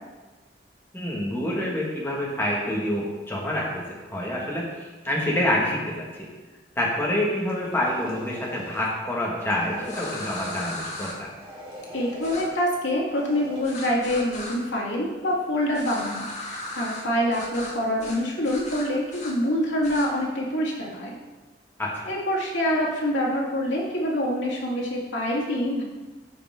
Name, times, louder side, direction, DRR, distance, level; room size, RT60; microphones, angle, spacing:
voice 1, 0.9-3.8 4.1-6.1 6.8-11.3 21.8-21.9, left 1 dB, 10° left, -4 dB, 1.8 m, -27 dB
sound 1, 7.4-8.9 9.4-10.8 11.3-12.5 13.1-13.6, equal, 30° right, 2.3 m, -41 dB
sound 2, 9.8-11.1 12.2-12.4 13.6-14.6 15.7-17.0 17.3-17.7 18.0-18.2 18.4-19.3 19.8-20.1, left 2 dB, 40° left, 2.1 m, -36 dB
voice 2, 11.9-21.2 22.0-25.8, equal, 90° left, -3 dB, 2.1 m, -26 dB
15.0 x 5.1 x 3.7 m, 1.3 s
head